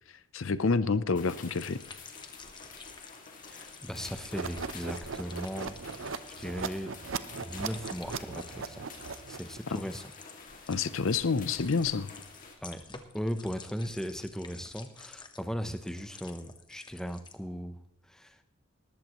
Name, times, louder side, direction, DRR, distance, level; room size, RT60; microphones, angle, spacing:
voice 1, 0.3-1.8 9.7-9.8 10.7-12.1, left 4 dB, 70° left, 14 dB, 0.7 m, -28 dB
sound 1, 1.2-12.6, left 4 dB, 40° left, 2.3 m, -50 dB
sound 2, 1.5-8.6 8.9-9.5 9.7-17.3, left 4 dB, 20° left, 1.1 m, -50 dB
voice 2, 3.5-5.8 6.4-7.0 7.4-8.8 9.3-10.0 10.6-10.7 12.6-12.8 13.1-17.8 18.1-18.4, equal, 5° left, 8 dB, 0.7 m, -37 dB
sound 3, 4.3-9.6, right 5 dB, 65° right, 0.7 m, -38 dB
19.5 x 14.0 x 3.1 m, 0.70 s
head